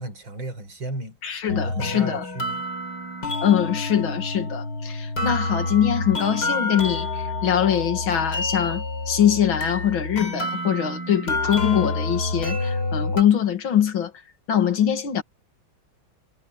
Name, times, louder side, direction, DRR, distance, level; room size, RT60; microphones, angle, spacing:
voice 1, 0.0-1.2 1.6-2.6, right 1 dB, 85° right, 5.4 m, -34 dB
voice 2, 1.2-2.3 3.4-14.1 14.5-15.2, left 9 dB, 90° left, 2.6 m, -23 dB
sound 1, 1.5-13.2, left 2 dB, 55° left, 5.1 m, -28 dB
omnidirectional pair, 2.1 m